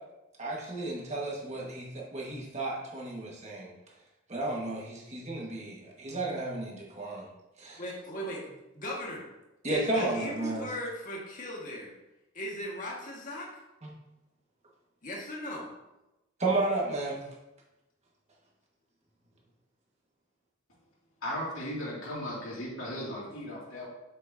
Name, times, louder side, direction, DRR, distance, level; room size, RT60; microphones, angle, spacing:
voice 1, 0.4-3.7 4.3-6.7 7.0-7.2 7.6-7.8 9.6-10.7 16.4-17.2, right 2 dB, 35° right, -3 dB, 1.5 m, -32 dB
voice 2, 7.8-9.2 9.7-11.9 12.3-13.5 15.0-15.7, left 1 dB, 40° left, -4 dB, 1.6 m, -38 dB
voice 3, 21.2-23.9, equal, 75° left, -6 dB, 2.3 m, -36 dB
7.2 x 6.9 x 2.7 m, 0.98 s
head